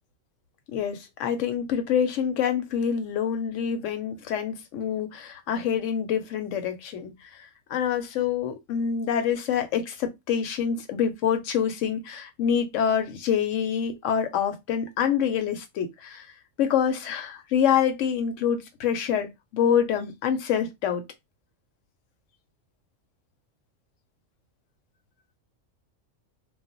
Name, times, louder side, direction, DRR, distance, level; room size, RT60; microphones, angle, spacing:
voice 1, 0.7-21.0, left 8 dB, 75° left, 1.0 m, -26 dB
2.3 x 2.0 x 3.7 m
omnidirectional pair, 1.3 m